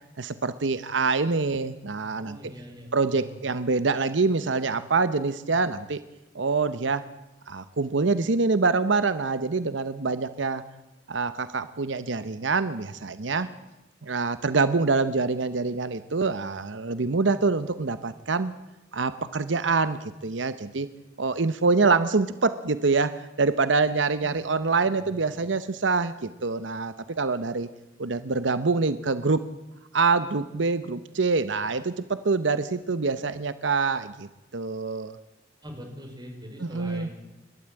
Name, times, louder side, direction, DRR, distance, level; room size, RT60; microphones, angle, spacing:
voice 1, 0.2-2.4 2.9-6.0 6.3-7.1 7.5-10.6 11.1-13.5 14.0-18.5 18.9-20.9 21.2-27.7 28.0-29.4 29.9-35.2 36.6-37.1, right 4 dB, 85° right, 13 dB, 0.9 m, -25 dB
voice 2, 2.1-3.4 13.4-13.5 24.1-24.3 25.0-25.4 31.6-31.7 35.6-37.1, equal, 25° right, 3 dB, 4.9 m, -43 dB
29.5 x 12.5 x 8.9 m, 1.0 s
head